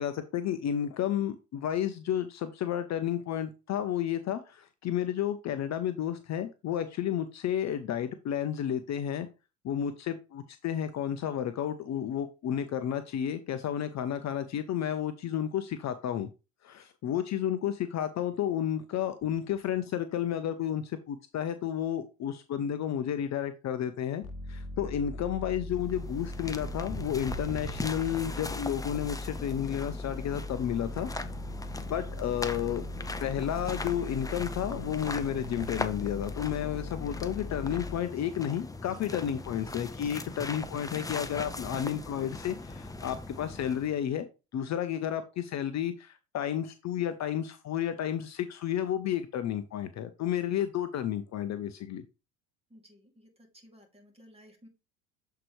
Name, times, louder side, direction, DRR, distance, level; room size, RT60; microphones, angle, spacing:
voice 1, 0.0-9.3 9.6-16.3 16.6-24.2 24.5-31.1 31.8-32.8 33.2-44.3 44.5-52.0, left 10 dB, 40° left, 10 dB, 0.8 m, -32 dB
sound 1, 24.2-38.0, left 1 dB, 75° left, 0.9 m, -40 dB
sound 2, 25.7-44.0, left 2 dB, 10° left, 0.7 m, -40 dB
voice 2, 52.7-54.7, equal, 15° right, 2 dB, 2.8 m, -56 dB
7.7 x 4.5 x 3.3 m, 0.29 s
hypercardioid pair, 70°, 43 cm